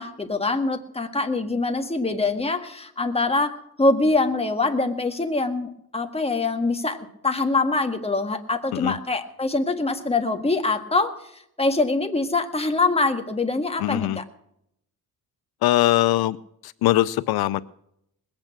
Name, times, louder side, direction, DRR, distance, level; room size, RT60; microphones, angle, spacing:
voice 1, 0.0-11.1 11.6-14.2, left 3 dB, 15° left, 6 dB, 1.7 m, -24 dB
voice 2, 13.8-14.2 15.6-16.4 16.6-17.6, left 15 dB, 80° left, 16 dB, 0.5 m, -21 dB
20.5 x 8.7 x 5.9 m, 0.75 s
cardioid pair, 90°, 37 cm